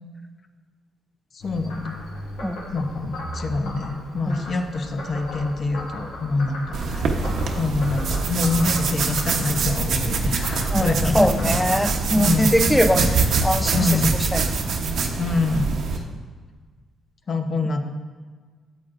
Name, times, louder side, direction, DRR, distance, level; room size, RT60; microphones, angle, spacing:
voice 1, 1.3-2.0 2.7-11.6 12.2-12.5 13.7-14.2 15.2-16.0 17.3-17.8, left 3 dB, 45° left, 6 dB, 0.8 m, -26 dB
Frog, 1.4-12.6, left 1 dB, 85° left, 1.7 m, -37 dB
sound 1, 6.7-16.0, right 4 dB, 65° right, 0.9 m, -24 dB
voice 2, 10.7-14.0 14.3-14.7, equal, 5° left, 9 dB, 0.5 m, -22 dB
13.0 x 7.8 x 2.5 m, 1.5 s
cardioid pair, 90°, 0 cm